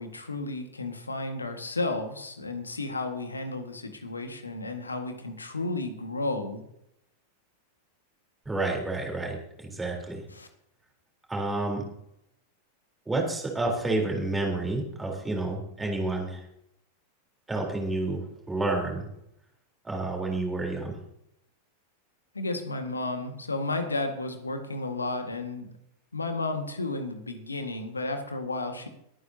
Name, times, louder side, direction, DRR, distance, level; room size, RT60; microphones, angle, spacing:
voice 1, 0.0-6.6 10.3-10.5 22.3-25.7 26.1-28.9, left 2 dB, 80° left, 6 dB, 1.8 m, -32 dB
voice 2, 8.5-10.2 11.3-11.9 13.1-16.4 17.5-19.1 19.8-21.0, right 2 dB, 10° right, 0 dB, 3.9 m, -30 dB
22.5 x 9.5 x 2.9 m, 0.78 s
figure-of-eight pair, 90°, 0 cm